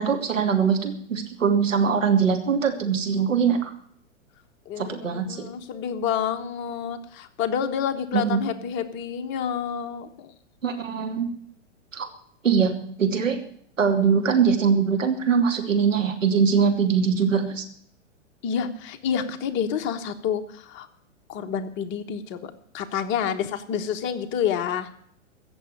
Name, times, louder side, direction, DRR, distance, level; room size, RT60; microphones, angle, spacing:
voice 1, 0.0-3.7 4.8-5.4 8.1-8.4 10.6-11.2 11.9-12.1 12.4-12.7 13.0-13.4 13.8-17.7, right 6 dB, 80° right, 4 dB, 3.0 m, -22 dB
voice 2, 4.6-10.3 18.4-20.9 21.3-24.9, left 8 dB, 30° left, 8 dB, 1.3 m, -28 dB
15.5 x 7.2 x 9.8 m, 0.63 s
figure-of-eight pair, 110°, 38 cm